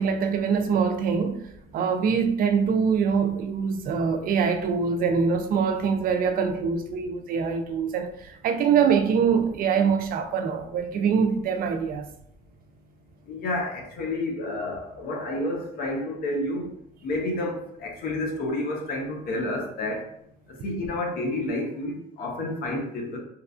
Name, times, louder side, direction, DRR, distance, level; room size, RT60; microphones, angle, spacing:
voice 1, 0.0-1.4 1.7-12.0, right 6 dB, 60° right, 0.4 m, -24 dB
voice 2, 13.3-16.6 17.0-20.1 20.6-23.2, left 1 dB, 60° left, 0.8 m, -30 dB
3.0 x 2.3 x 2.4 m
cardioid pair, 110°, 17 cm